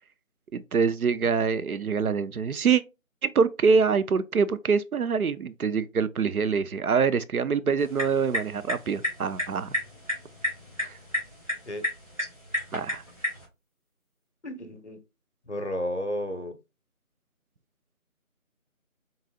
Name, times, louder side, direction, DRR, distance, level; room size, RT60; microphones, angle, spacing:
voice 1, 0.5-2.8 3.2-9.7 10.8-11.0 12.7-13.0, right 5 dB, 85° right, 0.6 m, -25 dB
sound 1, 7.8-13.4, left 1 dB, 25° right, 1.5 m, -33 dB
voice 2, 14.4-15.0 15.5-16.6, equal, 55° left, 0.8 m, -32 dB
3.9 x 3.9 x 2.3 m
figure-of-eight pair, 175°, 42 cm